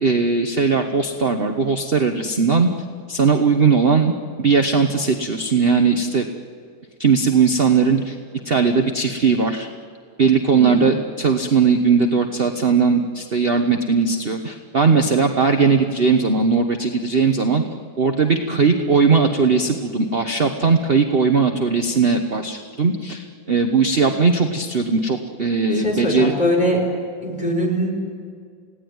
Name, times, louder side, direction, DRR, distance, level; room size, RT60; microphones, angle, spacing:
voice 1, 0.0-2.7 3.1-4.1 4.4-6.2 7.0-8.2 8.4-9.7 10.2-17.6 18.0-26.3, right 5 dB, 35° right, 5 dB, 1.2 m, -18 dB
voice 2, 10.5-10.9 25.7-26.8 27.2-27.9, equal, 20° left, -1 dB, 5.3 m, -22 dB
30.0 x 17.5 x 9.5 m, 2.2 s
omnidirectional pair, 2.1 m